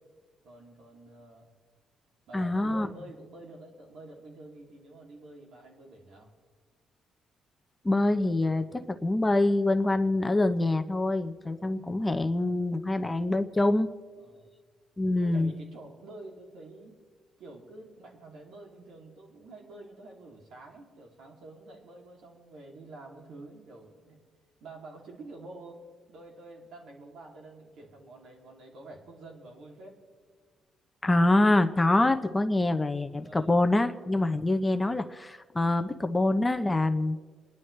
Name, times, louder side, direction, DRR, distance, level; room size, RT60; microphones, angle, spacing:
voice 1, 0.4-1.5 2.3-6.3 14.2-14.5 15.2-17.0 17.4-24.2 24.6-25.8 26.1-30.0 33.2-33.6, right 2 dB, 75° right, 0 dB, 2.9 m, -48 dB
voice 2, 2.3-2.9 7.8-13.9 15.0-15.5 31.0-37.2, left 2 dB, 15° left, 8 dB, 0.8 m, -25 dB
28.0 x 11.0 x 3.3 m, 1.5 s
cardioid pair, 90°, 0 cm